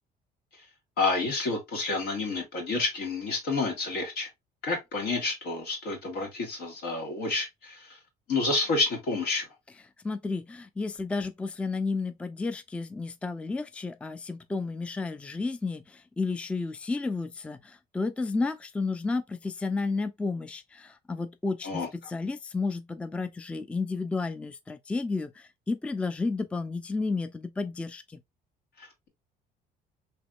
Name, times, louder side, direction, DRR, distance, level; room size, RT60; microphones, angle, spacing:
voice 1, 1.0-4.3 4.6-8.0 8.3-9.5 21.6-21.9 28.8-29.1, left 3 dB, 80° left, 1.8 m, -29 dB
voice 2, 10.0-28.2, left 3 dB, 5° left, 0.3 m, -32 dB
3.4 x 3.2 x 2.3 m
cardioid pair, 110°, 17 cm